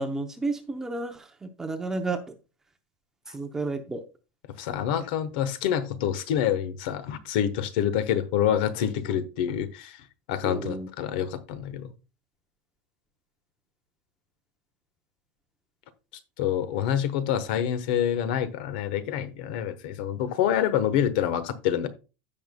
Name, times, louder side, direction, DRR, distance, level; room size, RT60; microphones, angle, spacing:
voice 1, 0.0-2.2 3.3-4.0 10.4-10.9, right 3 dB, 10° right, 0.7 m, -31 dB
voice 2, 4.6-11.9 16.4-21.9, left 9 dB, 55° left, 1.1 m, -27 dB
15.5 x 5.4 x 2.2 m
supercardioid pair, 175°, 6 cm